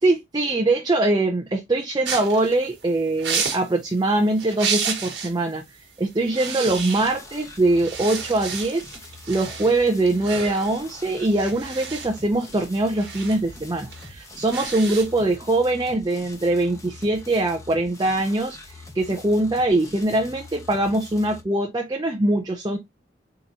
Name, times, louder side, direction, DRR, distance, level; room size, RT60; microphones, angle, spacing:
voice 1, 0.0-5.6 6.0-8.9 9.3-22.8, right 2 dB, 20° right, 0.6 m, -22 dB
sound 1, 2.0-5.4 5.7-5.9 6.2-7.4 7.7-15.3, right 6 dB, 70° right, 1.4 m, -32 dB
sound 2, 6.6-21.4, left 2 dB, 20° left, 1.1 m, -44 dB
4.1 x 3.8 x 2.9 m
head